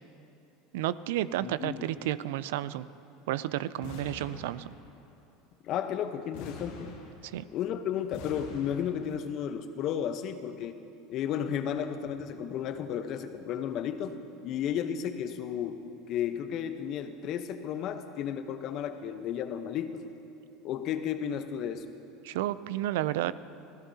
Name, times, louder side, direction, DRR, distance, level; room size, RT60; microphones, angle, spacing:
voice 1, 0.7-2.9 3.3-4.7 7.2-7.4 22.2-23.3, right 14 dB, 75° right, 17 dB, 0.4 m, -31 dB
voice 2, 1.4-1.8 5.6-6.9 7.5-10.8 11.1-20.0 20.6-21.8, left 9 dB, 50° left, 9 dB, 0.9 m, -33 dB
sound 1, 3.8-5.1 6.3-7.6 8.1-9.2, left 4 dB, 75° left, 2.1 m, -45 dB
25.0 x 16.0 x 2.8 m, 2.9 s
hypercardioid pair, 90°, 0 cm